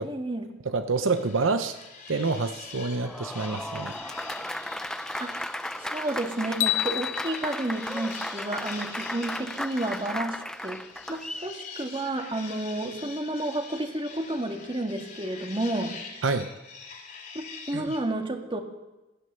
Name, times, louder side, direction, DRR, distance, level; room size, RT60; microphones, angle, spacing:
voice 1, 0.0-0.5 5.2-5.3 5.8-10.8 11.1-15.9 17.3-18.6, right 1 dB, 25° right, 4 dB, 1.7 m, -31 dB
voice 2, 0.6-1.7 2.1-3.9 16.2-16.5 17.7-17.9, right 4 dB, 80° right, 9 dB, 0.8 m, -27 dB
sound 1, 1.1-6.8 7.2-18.0, left 5 dB, 45° left, 3.4 m, -44 dB
Applause, 2.8-11.5, left 1 dB, 5° left, 0.4 m, -35 dB
sound 2, 6.6-8.9, left 15 dB, 75° left, 0.5 m, -31 dB
16.5 x 12.5 x 6.6 m, 1.0 s
head